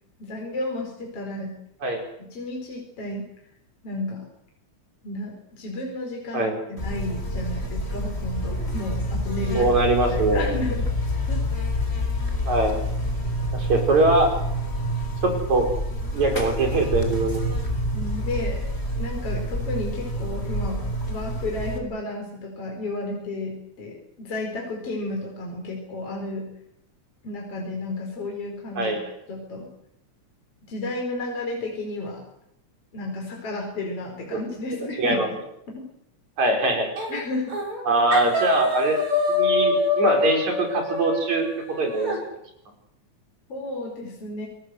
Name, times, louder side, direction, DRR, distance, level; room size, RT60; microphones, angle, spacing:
voice 1, 0.2-1.6 2.2-3.3 3.8-4.3 5.0-9.8 10.1-10.9 11.3-11.4 17.9-18.7 19.0-26.5 27.2-29.0 29.3-29.7 30.7-32.2 32.9-35.2 37.1-37.6 43.5-44.5, left 2 dB, 50° left, 0 dB, 5.6 m, -32 dB
Buzz, 6.8-21.8, equal, 20° left, 4.1 m, -28 dB
voice 2, 9.5-10.5 12.5-12.8 13.5-14.3 15.2-15.7 16.1-17.4 28.7-29.0 35.0-35.3 36.4-36.9 37.9-39.0 39.3-41.5 41.8-42.1, right 2 dB, 65° right, 3 dB, 6.3 m, -22 dB
sound 1, 37.0-37.2 37.5-37.8 38.1-42.2, left 2 dB, 45° right, 7.0 m, -25 dB
28.5 x 19.5 x 7.9 m, 0.77 s
omnidirectional pair, 3.5 m